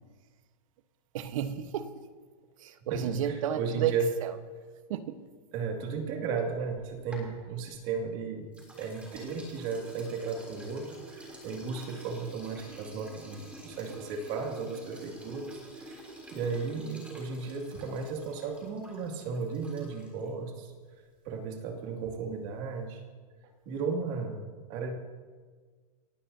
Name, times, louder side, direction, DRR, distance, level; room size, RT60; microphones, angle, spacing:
voice 1, 1.1-1.9 2.6-3.9 4.2-4.3 4.9-5.3, right 10 dB, 55° right, 10 dB, 1.2 m, -32 dB
voice 2, 2.9-4.1 5.5-16.0 16.3-20.7 21.2-23.0 23.7-24.9, right 5 dB, 35° right, 2 dB, 2.4 m, -35 dB
sound 1, 6.8-8.1 8.5-20.3, right 1 dB, 5° right, 3.3 m, -49 dB
29.0 x 15.0 x 2.8 m, 1.5 s
supercardioid pair, 165°, 20 cm